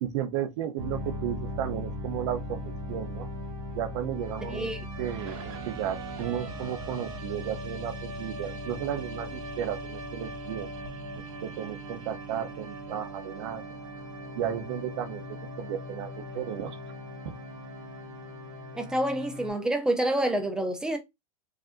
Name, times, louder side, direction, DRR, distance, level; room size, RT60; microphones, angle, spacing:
voice 1, 0.0-3.3 3.8-4.7 5.0-13.6 14.3-16.8 17.3-17.4, right 10 dB, 50° right, 0.7 m, -34 dB
sound 1, 0.8-19.5, equal, 85° right, 2.3 m, -39 dB
voice 2, 4.5-4.8 18.7-21.0, right 1 dB, 5° right, 0.4 m, -27 dB
4.8 x 2.6 x 2.5 m
supercardioid pair, 160°, 18 cm